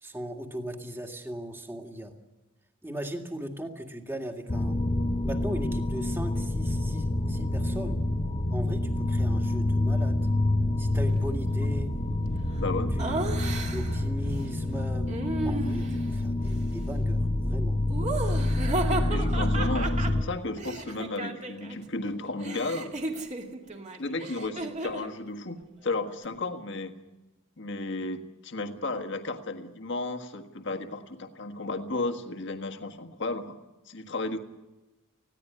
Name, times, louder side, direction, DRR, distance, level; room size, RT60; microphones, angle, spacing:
voice 1, 0.0-2.1 2.8-4.8 5.2-8.0 8.5-10.2 10.8-11.9 13.0-15.1 15.4-17.8, equal, 10° right, 4 dB, 2.0 m, -38 dB
sound 1, 4.5-20.2, left 1 dB, 30° left, 0.9 m, -27 dB
voice 2, 12.6-12.9 18.9-22.9 24.0-26.9 27.6-33.6 33.9-34.4, left 2 dB, 60° left, 6 dB, 1.7 m, -33 dB
Laughter, 13.0-14.0 15.1-16.1 17.9-21.8 22.0-25.1, right 2 dB, 35° right, 2.2 m, -34 dB
20.0 x 16.0 x 9.7 m, 1.1 s
head